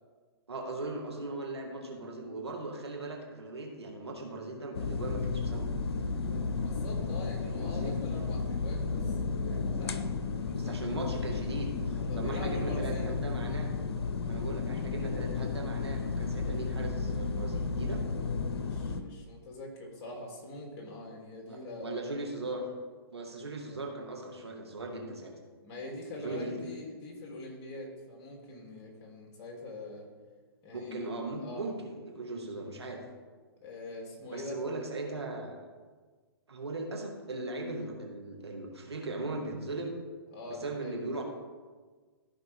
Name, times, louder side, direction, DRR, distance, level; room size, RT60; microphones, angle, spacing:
voice 1, 0.5-5.7 7.5-8.0 10.5-13.7 14.2-18.0 21.5-22.7 23.1-25.3 26.2-26.6 30.7-33.0 34.3-35.6 36.5-39.9 40.5-41.2, right 2 dB, 85° right, 1 dB, 2.1 m, -38 dB
raw patio, 4.7-19.0, left 4 dB, 75° left, 0.8 m, -33 dB
voice 2, 6.6-9.2 9.8-10.8 11.9-13.1 14.9-15.1 18.6-22.0 23.7-23.8 25.6-30.1 30.6-31.1 31.4-31.7 33.6-34.6 40.3-41.0, left 2 dB, 35° left, -1 dB, 3.1 m, -44 dB
14.5 x 5.6 x 3.7 m, 1.4 s
hypercardioid pair, 125°, 13 cm